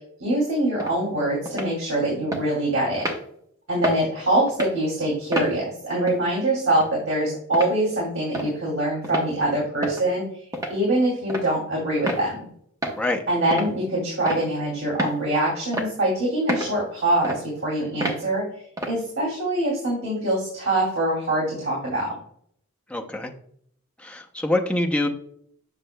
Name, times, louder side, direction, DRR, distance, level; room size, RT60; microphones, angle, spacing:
voice 1, 0.2-3.1 3.7-12.5 13.3-18.4 18.9-22.1, right 1 dB, 75° right, -4 dB, 2.7 m, -24 dB
sound 1, 0.8-1.0 1.5-1.7 2.3-2.4 3.0-3.2 3.8-4.0 4.5-4.8 5.3-5.5 6.1-6.2 6.8-6.9 7.5-7.7 8.3-8.5 9.0-9.3 9.8-10.1 10.5-10.8 11.3-11.5 12.1-12.2 12.8-13.0 13.5-13.7 14.3-14.5 15.0-15.2 15.7-15.9 16.5-16.7 17.2-17.4 18.0-18.2 18.8-19.0, right 1 dB, 15° right, 1.0 m, -28 dB
voice 2, 22.9-23.3 24.0-25.1, left 1 dB, 5° left, 2 dB, 0.6 m, -25 dB
8.0 x 6.4 x 2.2 m, 0.64 s
head